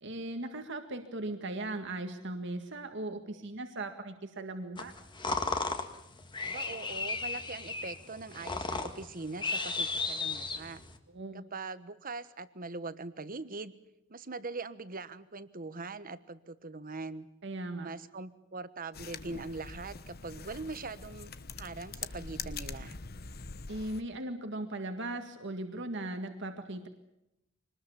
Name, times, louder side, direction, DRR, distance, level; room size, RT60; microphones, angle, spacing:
voice 1, 0.0-4.9 11.1-11.4 17.4-17.9 23.7-26.9, right 2 dB, 60° right, 6 dB, 2.0 m, -38 dB
sound 1, 4.8-11.0, left 3 dB, 25° left, 1.9 m, -35 dB
voice 2, 6.4-10.8 11.3-13.7 14.1-17.3 17.8-23.0, right 3 dB, 45° right, 14 dB, 1.3 m, -42 dB
sound 2, 18.9-24.0, left 5 dB, 50° left, 1.1 m, -43 dB
24.5 x 20.0 x 7.2 m, 0.86 s
head